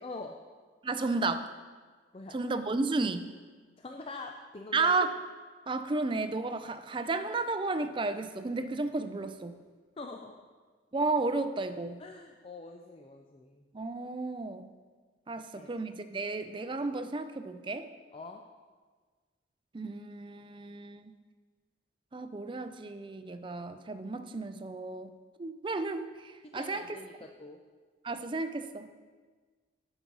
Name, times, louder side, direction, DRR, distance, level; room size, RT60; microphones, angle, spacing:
voice 1, 0.0-0.4 2.1-2.3 3.8-5.0 10.0-10.5 12.0-13.6 15.4-15.7 18.1-18.4 26.4-27.6, left 3 dB, 30° left, 3 dB, 0.4 m, -44 dB
voice 2, 0.8-1.5 2.3-3.3 4.7-5.1 5.7-9.6 10.9-12.0 13.7-14.7 15.3-17.9 19.7-21.1 22.1-25.1 25.4-27.0 28.0-28.9, right 3 dB, 25° right, 10 dB, 0.4 m, -33 dB
9.8 x 6.1 x 5.4 m, 1.5 s
head